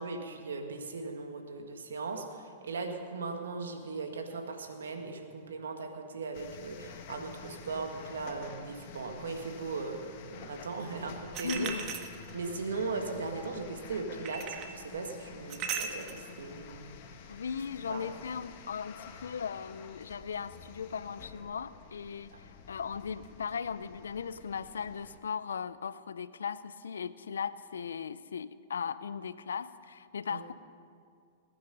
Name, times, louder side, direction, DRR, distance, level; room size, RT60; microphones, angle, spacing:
voice 1, 0.0-11.7 12.3-17.3 17.9-18.1 30.3-30.4, right 4 dB, 85° right, 4 dB, 1.7 m, -38 dB
sound 1, 6.3-25.2, left 7 dB, 55° left, 1.5 m, -50 dB
sound 2, 11.3-12.5 14.2-14.8 15.5-16.2, right 7 dB, 40° right, 1.4 m, -37 dB
voice 2, 11.4-11.9 17.3-30.5, left 6 dB, 85° left, 15 dB, 0.5 m, -38 dB
21.0 x 9.5 x 5.4 m, 2.3 s
hypercardioid pair, 115°, 0 cm